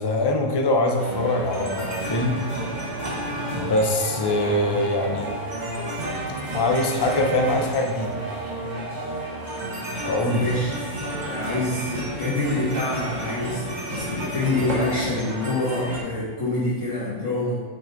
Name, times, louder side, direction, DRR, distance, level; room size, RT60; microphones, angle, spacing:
voice 1, 0.0-2.4 3.6-5.3 6.5-8.1 10.1-10.5, left 2 dB, 40° left, 2 dB, 0.3 m, -23 dB
sound 1, 1.0-16.0, right 1 dB, 35° right, 1.2 m, -31 dB
voice 2, 10.3-10.9 11.3-17.6, left 2 dB, 60° left, -10 dB, 1.8 m, -26 dB
5.7 x 5.3 x 3.9 m, 1.4 s
omnidirectional pair, 1.5 m